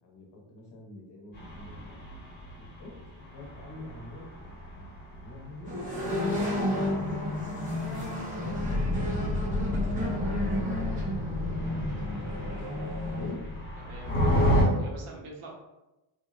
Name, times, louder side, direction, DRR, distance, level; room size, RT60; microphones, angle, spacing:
voice 1, 0.0-1.9 2.8-3.0 3.3-5.8 6.2-7.0 7.3-8.0 8.3-11.0 11.3-12.2 13.1-13.4, left 2 dB, 55° left, -1 dB, 0.7 m, -45 dB
sound 1, 1.3-14.6, left 1 dB, 20° left, 0.9 m, -32 dB
sound 2, 5.7-13.3, left 1 dB, 15° right, 0.7 m, -32 dB
voice 2, 13.8-15.5, right 2 dB, 80° right, -1 dB, 0.8 m, -45 dB
3.3 x 2.0 x 2.4 m, 0.99 s
wide cardioid pair, 165°, 50 cm